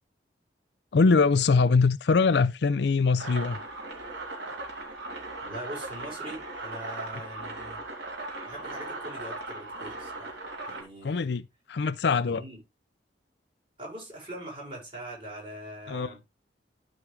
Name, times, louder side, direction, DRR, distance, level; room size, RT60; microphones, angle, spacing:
voice 1, 0.9-3.6 11.0-11.4 11.7-12.4 15.9-16.1, left 4 dB, 65° left, 0.5 m, -22 dB
sound 1, 3.2-10.8, right 2 dB, 75° right, 3.1 m, -38 dB
voice 2, 5.4-7.8 8.5-10.4 10.7-11.3 12.3-12.6 13.8-16.2, right 1 dB, 30° right, 6.0 m, -42 dB
13.0 x 5.2 x 3.3 m
head